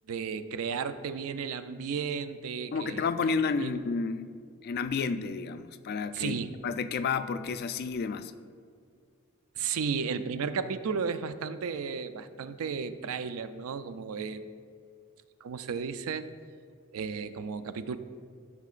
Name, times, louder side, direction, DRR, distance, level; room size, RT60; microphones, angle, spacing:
voice 1, 0.1-3.1 3.6-3.8 6.1-6.6 9.6-14.5 15.4-16.3 16.9-18.0, right 6 dB, 80° right, 12 dB, 0.4 m, -34 dB
voice 2, 2.7-4.2 4.6-6.4 6.6-8.3, left 5 dB, 45° left, 11 dB, 0.3 m, -31 dB
13.0 x 6.1 x 2.5 m, 2.3 s
head